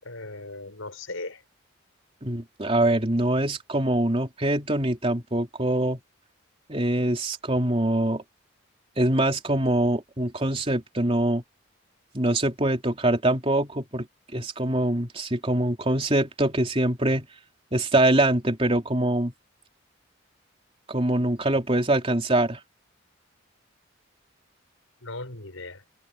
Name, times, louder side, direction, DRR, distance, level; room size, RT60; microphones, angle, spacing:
voice 1, 0.0-1.4 25.0-25.8, left 2 dB, 85° left, 5.7 m, -38 dB
voice 2, 2.2-6.0 6.7-8.2 9.0-11.4 12.1-14.1 14.3-17.3 17.7-19.3 20.9-22.6, right 1 dB, 30° right, 3.2 m, -24 dB
open air
head